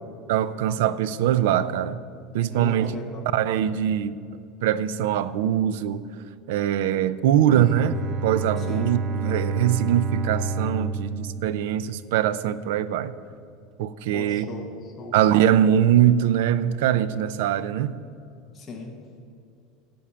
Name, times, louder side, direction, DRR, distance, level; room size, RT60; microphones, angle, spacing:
voice 1, 0.3-2.0 2.3-3.0 3.3-4.2 4.6-6.1 6.5-13.1 13.8-14.5 15.1-18.0, right 10 dB, 70° right, 0.5 m, -22 dB
voice 2, 2.5-3.2 8.6-8.9 14.1-15.1 18.5-18.9, left 3 dB, 15° left, 1.2 m, -37 dB
Bowed string instrument, 7.5-12.4, right 3 dB, 25° right, 0.5 m, -30 dB
10.5 x 7.1 x 8.7 m
cardioid pair, 180°, 0 cm